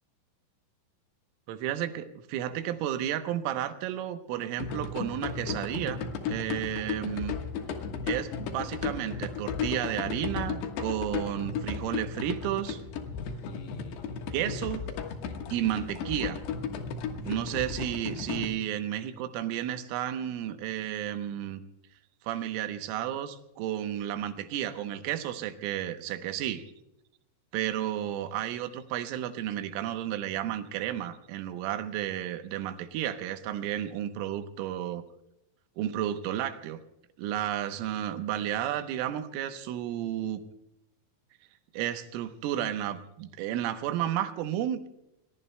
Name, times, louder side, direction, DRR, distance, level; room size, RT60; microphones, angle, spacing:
voice 1, 1.5-6.0 6.3-7.4 8.0-12.8 14.3-14.9 15.5-16.4 17.3-21.6 22.2-26.7 27.5-35.0 35.8-36.8 37.2-40.4 41.7-44.9, right 11 dB, 80° right, 8 dB, 3.4 m, -32 dB
sound 1, 4.6-18.5, left 6 dB, 65° left, 3.0 m, -35 dB
29.0 x 22.0 x 2.2 m, 0.87 s
omnidirectional pair, 5.9 m